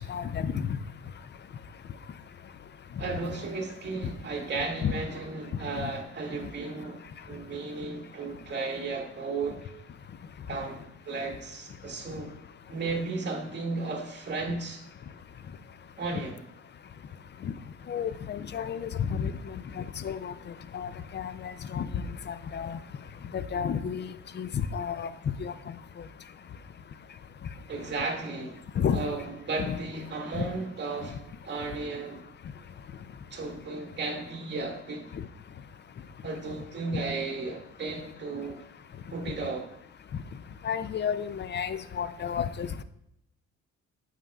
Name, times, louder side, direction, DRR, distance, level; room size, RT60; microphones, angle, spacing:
voice 1, 0.1-0.5 4.8-4.9 5.8-5.9 17.4-17.5 17.9-20.3 20.7-21.9 22.3-22.8 23.3-25.1 25.4-25.5 28.8-29.0 29.7-29.8 30.3-30.4 40.6-42.8, left 7 dB, 35° left, 14 dB, 0.5 m, -31 dB
voice 2, 3.0-7.0 7.3-9.7 10.5-12.3 12.7-14.8 16.0-16.4 27.7-28.6 28.9-32.2 33.3-35.1 36.2-38.6 39.1-39.7, right 3 dB, 35° right, -1 dB, 2.1 m, -34 dB
8.9 x 6.4 x 2.4 m, 0.80 s
cardioid pair, 90°, 30 cm